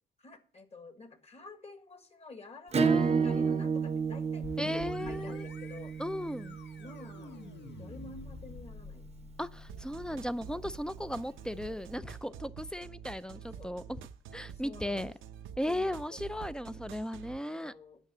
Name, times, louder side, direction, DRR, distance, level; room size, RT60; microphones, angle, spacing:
voice 1, 0.2-5.9 6.8-7.4 7.8-9.4 13.6-13.8 14.6-15.1 15.7-16.2 17.5-18.0, left 3 dB, 30° left, 1.7 m, -49 dB
Acoustic guitar / Strum, 2.7-8.0, right 6 dB, 30° right, 0.8 m, -31 dB
voice 2, 2.8-3.7 4.6-5.5 6.0-6.6 9.4-14.0 14.3-15.1 15.6-17.7, left 1 dB, 5° left, 0.5 m, -36 dB
sound 1, 4.4-14.0, left 5 dB, 65° left, 1.4 m, -50 dB
sound 2, 9.7-17.4, right 8 dB, 80° right, 0.8 m, -47 dB
9.0 x 6.0 x 6.8 m
cardioid pair, 90°, 20 cm